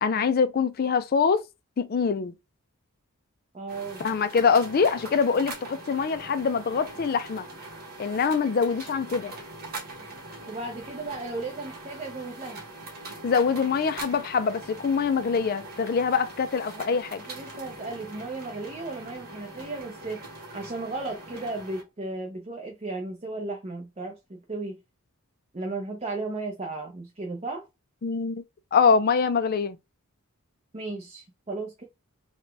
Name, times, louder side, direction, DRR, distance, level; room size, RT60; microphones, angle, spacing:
voice 1, 0.0-1.4 1.8-2.3 4.0-7.4 8.0-9.3 13.2-17.2 28.0-28.4 28.7-29.8, left 5 dB, 40° left, 0.3 m, -24 dB
voice 2, 3.5-4.2 10.5-12.6 16.7-17.0 17.3-20.2 20.5-24.8 25.5-27.7 30.7-31.8, right 2 dB, 30° right, 0.7 m, -35 dB
sound 1, 3.7-21.8, right 2 dB, 45° right, 1.4 m, -42 dB
4.0 x 2.3 x 3.3 m
head